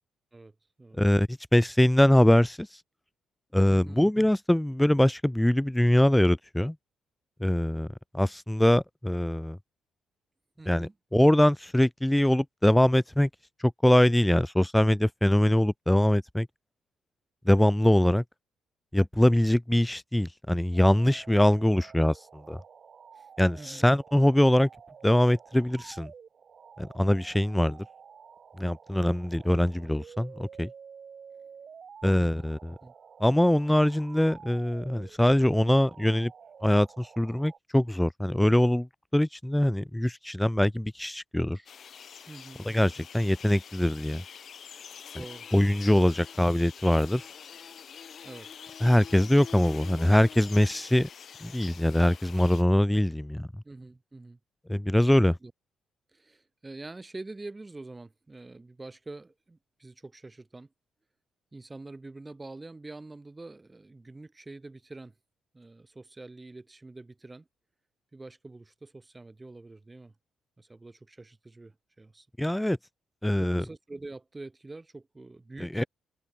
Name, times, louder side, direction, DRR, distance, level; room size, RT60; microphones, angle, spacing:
voice 1, 0.3-1.0 3.7-4.0 10.6-10.9 23.1-23.3 23.6-23.9 32.2-32.5 32.8-32.9 42.3-43.1 45.1-45.5 46.1-46.2 48.2-48.5 51.7-51.9 53.6-54.4 55.4-55.5 56.1-60.7 61.5-65.1 65.5-67.5 68.1-70.1 70.6-72.3 73.4-75.9, right 2 dB, 20° right, 5.4 m, -46 dB
voice 2, 1.0-2.7 3.5-6.8 7.4-7.9 8.1-9.6 10.7-13.3 13.6-16.5 17.5-18.2 18.9-22.6 23.4-24.7 25.0-26.1 26.8-27.9 28.6-30.7 32.0-32.7 33.2-36.3 36.6-38.9 39.1-41.6 42.7-44.2 45.5-47.2 48.8-51.1 51.4-53.5 54.7-55.4 72.4-72.8 73.2-73.6 75.6-75.8, left 1 dB, 5° left, 2.1 m, -23 dB
sound 1, 20.7-37.6, right 6 dB, 50° right, 6.3 m, -51 dB
sound 2, 41.7-52.6, left 7 dB, 55° left, 3.2 m, -46 dB
cardioid pair, 90°, 0 cm